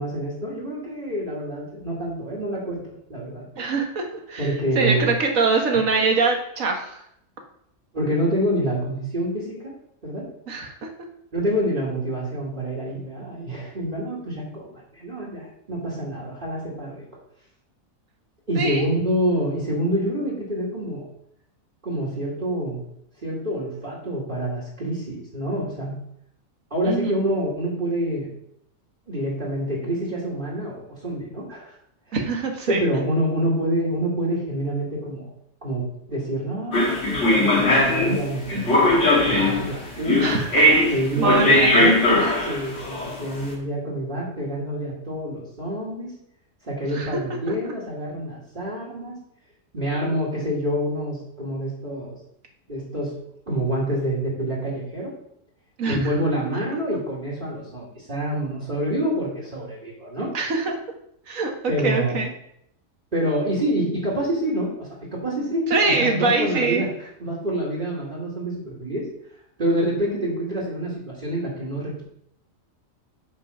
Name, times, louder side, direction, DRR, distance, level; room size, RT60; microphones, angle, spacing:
voice 1, 0.0-3.4 4.4-5.1 5.5-5.6 7.9-9.7 10.0-10.3 11.3-17.0 18.5-21.1 21.8-22.8 23.2-26.0 26.7-28.3 29.1-31.7 32.1-32.2 32.7-35.3 35.6-40.4 40.9-42.1 42.4-46.1 46.6-49.2 49.7-52.2 52.7-53.1 53.5-55.1 55.9-60.3 61.7-62.2 63.1-69.1 69.6-72.0, right 1 dB, 35° right, -4 dB, 2.3 m, -27 dB
voice 2, 3.6-7.0 10.5-10.9 18.5-18.9 26.9-27.1 32.1-32.8 40.2-40.5 40.9-42.3 46.9-47.2 47.5-47.6 55.8-56.1 60.3-60.8 61.3-61.5 61.8-62.3 65.7-66.8, right 4 dB, 70° right, 3 dB, 1.8 m, -23 dB
sound 1, 36.7-43.4, left 1 dB, 55° left, 2.2 m, -19 dB
7.7 x 5.2 x 5.5 m, 0.72 s
omnidirectional pair, 1.5 m